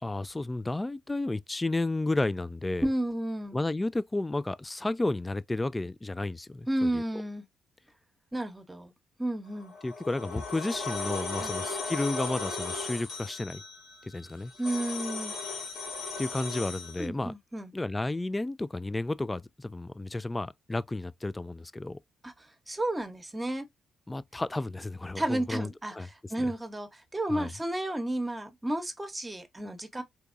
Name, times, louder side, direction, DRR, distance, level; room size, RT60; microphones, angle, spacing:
voice 1, 0.0-2.9 3.5-7.0 9.8-13.6 14.0-14.5 16.2-17.3 17.7-22.0 24.1-26.5 27.3-27.5, left 2 dB, 20° left, 0.3 m, -32 dB
voice 2, 2.8-3.6 6.7-7.4 8.3-8.9 9.2-9.7 11.4-11.6 14.6-15.3 17.0-17.7 22.2-23.7 25.1-30.0, right 1 dB, 20° right, 0.9 m, -32 dB
sound 1, 9.6-17.1, left 4 dB, 65° left, 1.5 m, -37 dB
3.4 x 2.9 x 2.5 m
hypercardioid pair, 45°, 0 cm